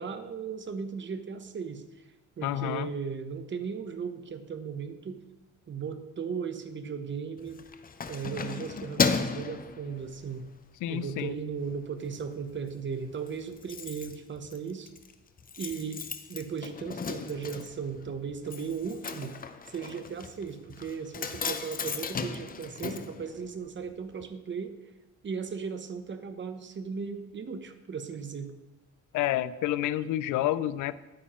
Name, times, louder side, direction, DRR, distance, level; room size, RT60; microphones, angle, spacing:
voice 1, 0.0-2.0 2.4-5.2 5.7-7.6 8.1-10.5 10.9-14.9 15.6-16.0 16.3-19.4 19.7-24.8 25.2-28.5, right 6 dB, 40° right, 9 dB, 0.9 m, -36 dB
voice 2, 2.4-2.9 10.8-11.4 29.1-31.0, left 13 dB, 80° left, 16 dB, 0.5 m, -29 dB
Keys jangling, 7.4-10.5 10.9-11.2 11.5-12.2 12.5-12.6 12.8-12.9 13.1-23.9 24.2-24.3, left 5 dB, 30° left, 0.6 m, -35 dB
10.0 x 8.7 x 3.0 m, 1.1 s
cardioid pair, 90°, 30 cm